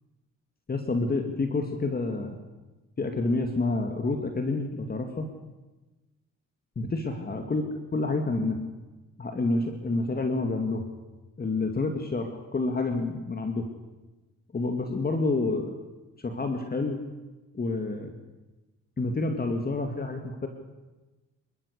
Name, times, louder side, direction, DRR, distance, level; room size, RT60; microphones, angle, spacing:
voice 1, 0.7-2.4 3.0-5.3 6.8-7.6 7.9-8.6 9.2-10.9 11.4-13.7 14.5-15.7 16.2-17.0 17.5-18.1 19.0-20.5, left 3 dB, 30° left, 5 dB, 2.3 m, -28 dB
26.0 x 14.0 x 8.2 m, 1.1 s
cardioid pair, 90°, 30 cm